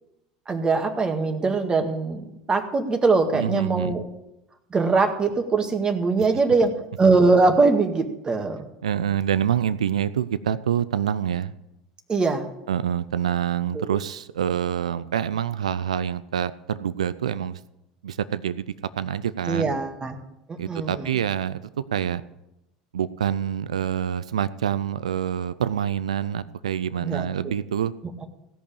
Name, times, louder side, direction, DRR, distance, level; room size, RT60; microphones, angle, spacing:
voice 1, 0.5-4.1 4.7-6.7 7.0-8.7 12.1-12.5 13.7-14.0 19.5-20.2 20.5-21.2 27.0-27.5 28.2-28.3, right 3 dB, 25° right, 5 dB, 1.8 m, -22 dB
voice 2, 3.3-4.0 8.8-11.5 12.7-17.6 18.0-19.7 20.6-21.6 21.9-22.2 22.9-27.9, right 9 dB, 85° right, 16 dB, 0.4 m, -26 dB
16.5 x 5.6 x 8.6 m, 0.90 s
hypercardioid pair, 80°, 3 cm